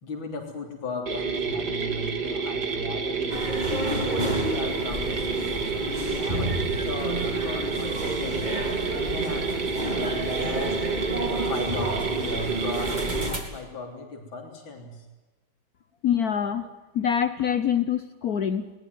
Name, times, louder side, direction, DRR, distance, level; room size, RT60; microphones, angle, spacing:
voice 1, 0.0-3.5 4.0-8.5 9.1-10.8 11.2-15.1, left 3 dB, 70° left, 2 dB, 4.2 m, -36 dB
sound 1, 1.1-13.3, right 5 dB, 55° right, 2.5 m, -29 dB
sound 2, 3.3-13.4, right 1 dB, 20° right, 3.9 m, -30 dB
voice 2, 16.0-16.7 16.9-18.7, left 8 dB, 55° left, 11 dB, 1.3 m, -25 dB
22.0 x 19.0 x 9.4 m, 1.2 s
omnidirectional pair, 2.2 m